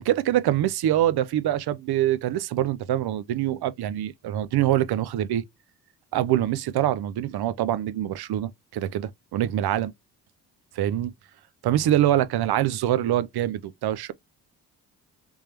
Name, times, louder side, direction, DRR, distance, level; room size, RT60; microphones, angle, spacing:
voice 1, 0.0-5.4 6.1-9.9 10.8-11.1 11.6-14.1, right 12 dB, 60° right, 0.6 m, -24 dB
3.5 x 3.2 x 2.9 m
supercardioid pair, 60°, 43 cm